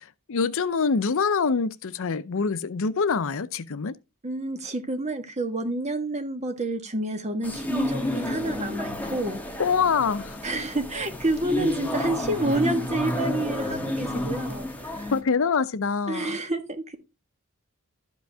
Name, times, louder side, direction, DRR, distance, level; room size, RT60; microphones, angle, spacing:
voice 1, 0.0-3.9 9.6-10.4 15.1-16.4, left 5 dB, 65° left, 0.6 m, -25 dB
voice 2, 4.2-9.4 10.4-15.1 16.1-16.9, right 2 dB, 30° right, 1.5 m, -29 dB
sound 1, 7.4-15.2, left 1 dB, 10° left, 1.6 m, -30 dB
12.5 x 5.2 x 3.4 m
head